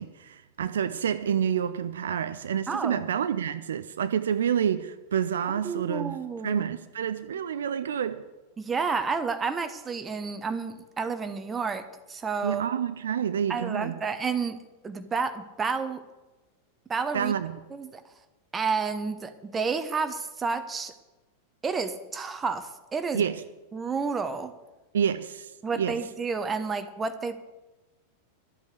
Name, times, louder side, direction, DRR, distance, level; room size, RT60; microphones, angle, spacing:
voice 1, 0.0-8.2 12.4-14.0 17.1-17.5 23.1-23.4 24.9-26.0, right 8 dB, 65° right, 0.6 m, -28 dB
voice 2, 2.7-3.0 5.6-6.6 8.6-12.6 13.5-16.0 16.9-17.3 17.7-18.0 18.5-20.9 21.6-23.2 23.7-24.5 25.6-27.4, right 5 dB, 20° right, 1.1 m, -30 dB
12.5 x 8.3 x 8.2 m
figure-of-eight pair, 90°, 0 cm